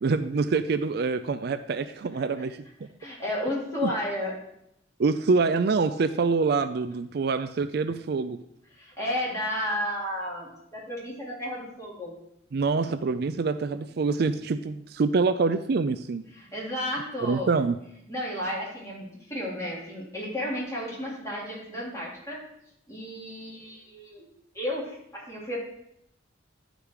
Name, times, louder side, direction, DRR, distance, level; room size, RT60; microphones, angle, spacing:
voice 1, 0.0-2.9 3.8-3.9 5.0-8.4 12.5-16.2 17.2-17.8, right 4 dB, 55° right, 11 dB, 0.4 m, -26 dB
voice 2, 3.0-4.3 8.7-12.1 16.3-17.5 18.1-22.4 22.9-24.2 24.5-25.6, left 1 dB, 15° left, -6 dB, 3.4 m, -33 dB
11.5 x 5.1 x 4.8 m, 0.77 s
head